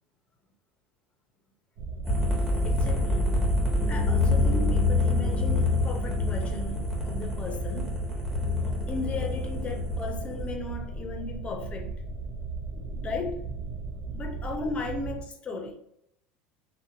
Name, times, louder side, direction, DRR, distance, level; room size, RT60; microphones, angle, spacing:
sound 1, 1.8-15.2, right 3 dB, 65° right, 0.5 m, -36 dB
sound 2, 2.0-10.5, left 2 dB, 5° right, 1.1 m, -26 dB
voice 1, 2.6-3.5 3.9-8.0 8.6-11.9 13.0-13.4 14.1-15.7, left 3 dB, 25° left, 0.6 m, -36 dB
2.8 x 2.1 x 2.7 m
hypercardioid pair, 85°, 5 cm